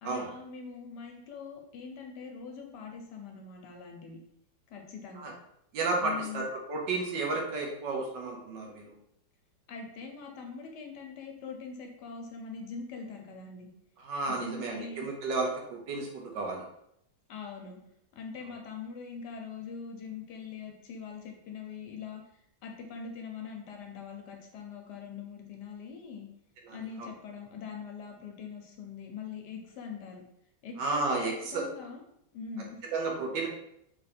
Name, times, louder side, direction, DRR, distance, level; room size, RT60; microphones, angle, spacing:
voice 1, 0.0-4.2 4.7-5.3 6.0-6.5 9.7-13.7 14.3-15.1 17.3-17.8 18.1-22.2 22.6-26.3 26.7-30.2 30.6-32.0 32.3-32.8, left 5 dB, 70° left, 2 dB, 1.2 m, -43 dB
voice 2, 5.7-8.8 14.0-16.6 26.7-27.1 30.8-31.6 32.9-33.5, right 3 dB, 75° right, 0 dB, 1.6 m, -32 dB
3.7 x 3.0 x 4.2 m, 0.75 s
omnidirectional pair, 2.0 m